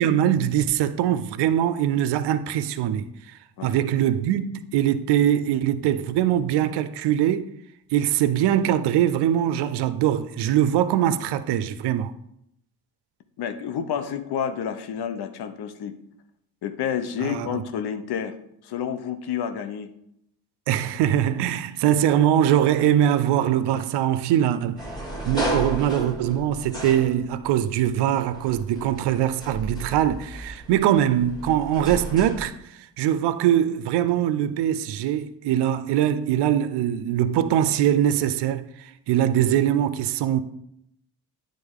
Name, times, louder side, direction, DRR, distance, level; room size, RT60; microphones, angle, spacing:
voice 1, 0.0-3.1 3.6-7.5 7.9-12.1 17.2-17.6 20.7-24.8 25.3-32.5 33.0-40.4, right 11 dB, 80° right, 0.5 m, -22 dB
voice 2, 13.4-16.0 16.6-18.4 18.6-19.9 25.5-25.6, left 8 dB, 70° left, 0.8 m, -29 dB
sound 1, 24.8-27.7 28.3-32.5, right 1 dB, 10° left, 2.0 m, -33 dB
9.0 x 3.7 x 3.6 m
supercardioid pair, 60°, 40 cm